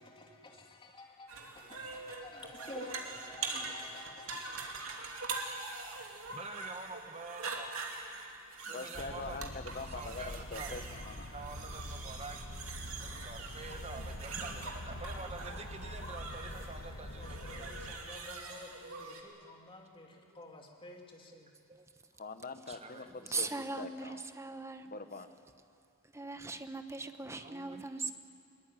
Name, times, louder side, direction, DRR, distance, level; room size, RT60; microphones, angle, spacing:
voice 1, 0.0-4.4 17.1-21.5, left 2 dB, 25° left, 1 dB, 2.9 m, -51 dB
sound 1, 1.3-19.2, right 4 dB, 85° right, 2.8 m, -43 dB
voice 2, 6.3-7.9 8.6-9.4 9.9-10.8 11.3-12.5 13.0-18.0 20.1-20.4 21.3-21.9 22.7-23.3 27.4-28.1, right 3 dB, 30° right, 5 dB, 1.7 m, -48 dB
voice 3, 8.6-11.3 22.2-23.5 23.8-24.2 24.9-25.3, left 3 dB, 45° left, 9 dB, 1.2 m, -43 dB
sound 2, 8.9-17.9, left 1 dB, 70° left, 1.6 m, -45 dB
voice 4, 23.3-24.9 26.0-28.1, right 3 dB, 15° right, 8 dB, 1.1 m, -39 dB
22.5 x 22.0 x 9.2 m, 2.3 s
head